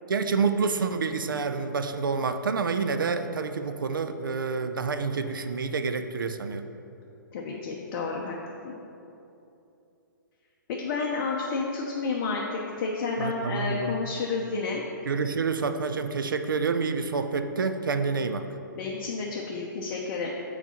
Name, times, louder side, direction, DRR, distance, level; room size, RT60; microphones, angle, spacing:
voice 1, 0.1-6.6 13.2-13.9 15.0-18.5, right 4 dB, 80° right, 9 dB, 0.5 m, -28 dB
voice 2, 7.3-8.3 8.6-8.7 10.7-14.8 18.7-20.3, left 4 dB, 40° left, -2 dB, 0.7 m, -30 dB
5.9 x 4.0 x 5.7 m, 2.8 s
hypercardioid pair, 125°, 11 cm